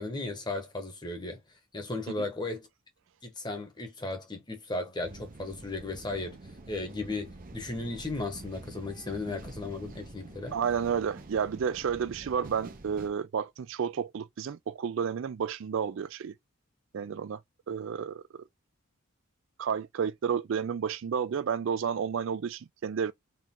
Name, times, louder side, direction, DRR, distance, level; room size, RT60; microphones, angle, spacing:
voice 1, 0.0-1.4 1.7-2.7 3.2-6.4 6.7-10.6, left 2 dB, 20° left, 1.1 m, -35 dB
sound 1, 5.0-13.1, right 2 dB, 40° right, 0.7 m, -47 dB
voice 2, 10.5-16.3 16.9-17.4 17.7-18.2 19.6-23.1, right 7 dB, 60° right, 0.4 m, -31 dB
4.4 x 2.4 x 3.7 m
head